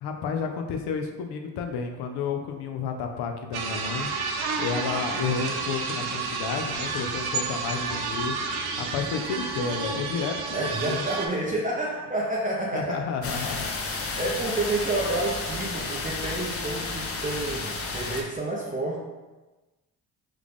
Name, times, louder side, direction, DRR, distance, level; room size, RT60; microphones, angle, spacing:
voice 1, 0.0-4.1 4.6-8.4 8.8-11.1 12.7-13.7 14.0-14.2, left 5 dB, 75° left, 5 dB, 0.5 m, -31 dB
sound 1, 3.5-11.3, right 4 dB, 70° right, 0.6 m, -30 dB
voice 2, 10.5-13.0 14.2-19.0, right 2 dB, 20° right, -3 dB, 0.5 m, -29 dB
sound 2, 13.2-18.2, left 3 dB, 35° left, 0.6 m, -32 dB
3.3 x 2.4 x 3.4 m, 1.2 s
supercardioid pair, 55°, 39 cm